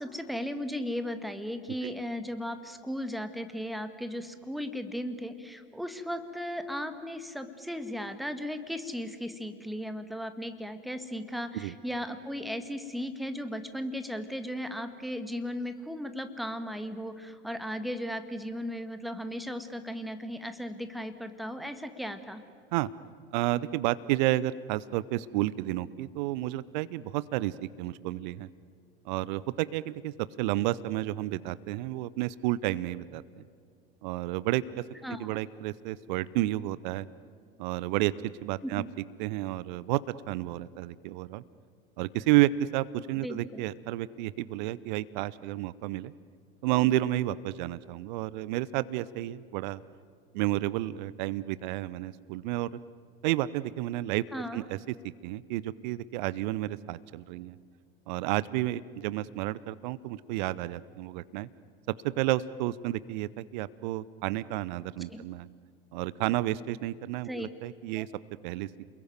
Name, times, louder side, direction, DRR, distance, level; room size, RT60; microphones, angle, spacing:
voice 1, 0.0-22.4 35.0-35.4 38.6-38.9 43.2-43.6 54.3-54.6 65.1-65.2 67.3-67.5 68.0-68.1, equal, ahead, 9 dB, 1.8 m, -36 dB
voice 2, 23.3-28.5 29.0-33.2 34.0-34.6 35.2-37.1 37.6-38.1 38.4-38.8 39.2-40.0 40.3-41.4 42.0-46.1 46.6-49.8 50.3-52.7 53.2-54.2 54.5-54.9 55.2-57.6 58.1-61.5 62.0-65.5 65.9-68.1 68.4-68.7, right 16 dB, 50° right, 19 dB, 0.8 m, -31 dB
28.5 x 21.5 x 9.5 m, 2.2 s
figure-of-eight pair, 80°, 30 cm